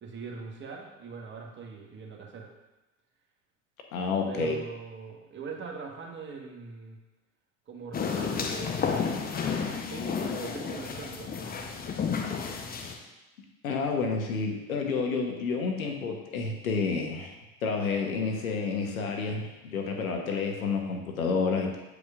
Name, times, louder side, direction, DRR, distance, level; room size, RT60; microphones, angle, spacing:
voice 1, 0.0-2.5 4.2-7.0 7.7-8.8 9.9-11.7, right 5 dB, 30° right, 0 dB, 1.2 m, -41 dB
voice 2, 3.9-4.6 13.6-17.4 17.6-21.8, left 4 dB, 85° left, 3 dB, 1.0 m, -29 dB
sound 1, 7.9-13.0, left 6 dB, 20° left, 0.7 m, -31 dB
8.0 x 5.0 x 2.4 m, 1.0 s
hypercardioid pair, 85°, 41 cm